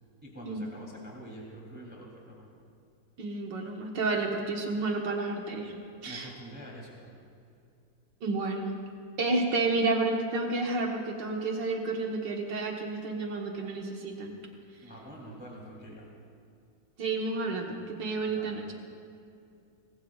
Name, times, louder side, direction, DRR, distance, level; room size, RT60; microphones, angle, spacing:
voice 1, 0.2-2.5 6.0-7.1 14.8-16.1 18.3-18.6, right 1 dB, 5° right, -4 dB, 2.9 m, -46 dB
voice 2, 3.2-6.3 8.2-8.7 9.2-14.4 17.0-18.7, right 3 dB, 80° right, 0 dB, 2.1 m, -31 dB
24.5 x 19.5 x 2.4 m, 2.5 s
omnidirectional pair, 1.9 m